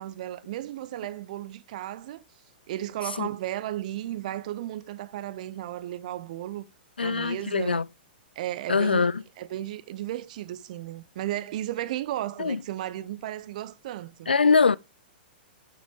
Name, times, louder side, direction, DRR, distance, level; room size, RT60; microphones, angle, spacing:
voice 1, 0.0-2.2 2.7-6.6 7.0-7.8 8.4-9.1 9.4-14.3, right 13 dB, 50° right, 0.7 m, -34 dB
voice 2, 7.0-7.8 8.7-9.2 12.4-12.6 14.3-14.8, left 5 dB, 80° left, 0.3 m, -22 dB
8.2 x 7.0 x 3.3 m
figure-of-eight pair, 110°, 5 cm